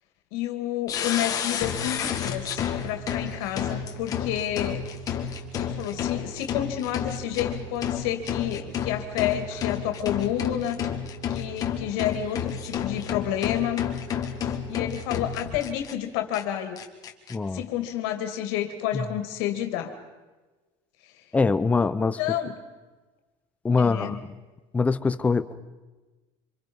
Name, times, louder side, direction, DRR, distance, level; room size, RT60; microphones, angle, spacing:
voice 1, 0.3-4.8 5.6-10.8 11.3-13.9 14.7-16.8 17.5-19.9 22.2-22.5 23.8-24.2, left 11 dB, 75° left, 6 dB, 2.5 m, -30 dB
sound 1, 0.9-15.9 16.3-16.4 16.8-17.3, left 8 dB, 25° left, 1.9 m, -30 dB
voice 2, 17.3-17.6 18.9-19.0 21.3-22.2 23.6-24.2 24.7-25.5, left 4 dB, 10° left, 12 dB, 0.7 m, -23 dB
27.0 x 26.5 x 5.5 m, 1.2 s
cardioid pair, 180°, 14 cm